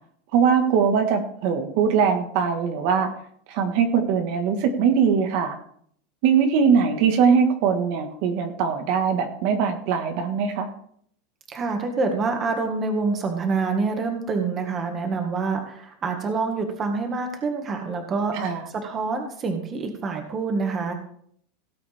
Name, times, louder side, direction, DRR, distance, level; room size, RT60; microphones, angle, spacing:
voice 1, 0.3-3.1 3.5-5.6 6.2-10.7 18.3-18.7, right 6 dB, 50° right, 5 dB, 1.6 m, -21 dB
voice 2, 11.5-20.9, right 4 dB, 20° right, 4 dB, 1.8 m, -26 dB
17.0 x 8.5 x 3.6 m, 0.64 s
supercardioid pair, 160°, 0 cm